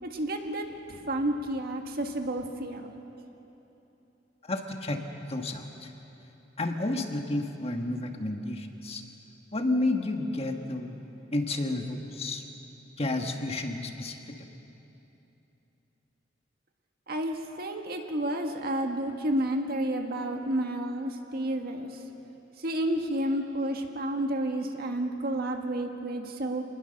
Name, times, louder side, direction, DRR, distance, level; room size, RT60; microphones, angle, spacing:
voice 1, 0.0-2.9 17.1-22.0 22.6-26.6, right 1 dB, 55° right, 4 dB, 1.7 m, -31 dB
voice 2, 4.4-5.9 6.6-9.0 9.5-11.0 11.3-12.4 13.0-14.2, left 2 dB, 35° left, 4 dB, 1.5 m, -31 dB
26.5 x 20.0 x 6.7 m, 3.0 s
head